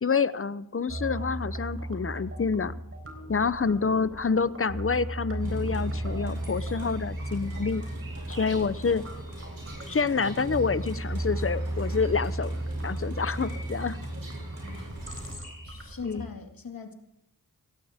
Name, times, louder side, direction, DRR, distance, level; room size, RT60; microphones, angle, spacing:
voice 1, 0.0-2.7 3.3-7.8 8.3-9.0 9.9-14.0 16.0-16.2, left 5 dB, 35° left, 15 dB, 0.8 m, -28 dB
sound 1, 0.9-16.2, right 1 dB, 40° right, 4.0 m, -35 dB
sound 2, 5.4-15.4, right 1 dB, 70° right, 7.7 m, -42 dB
voice 2, 14.6-14.9 15.6-16.9, left 5 dB, 65° left, 4 dB, 2.2 m, -41 dB
17.5 x 17.0 x 3.6 m, 0.76 s
cardioid pair, 55°, 37 cm